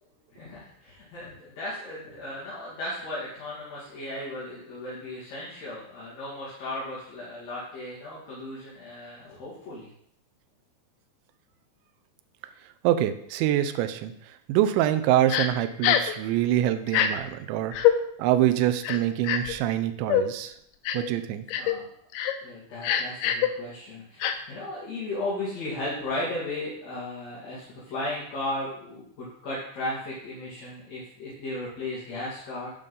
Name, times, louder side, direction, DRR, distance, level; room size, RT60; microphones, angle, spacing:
voice 1, 0.4-9.9 21.5-21.9 22.4-32.7, left 1 dB, 45° left, -8 dB, 3.0 m, -35 dB
voice 2, 12.8-14.1 14.5-20.5 20.9-21.5, right 12 dB, 85° right, 10 dB, 3.0 m, -25 dB
Crying sobbing, 15.3-15.5 15.8-16.2 16.9-17.1 17.7-17.9 18.8-19.5 20.1-20.3 20.9-21.1 21.5-21.8 22.1-22.4 22.8-23.5 24.2-24.3, left 11 dB, 85° left, 3.1 m, -23 dB
11.0 x 5.3 x 5.4 m, 0.70 s
omnidirectional pair, 5.2 m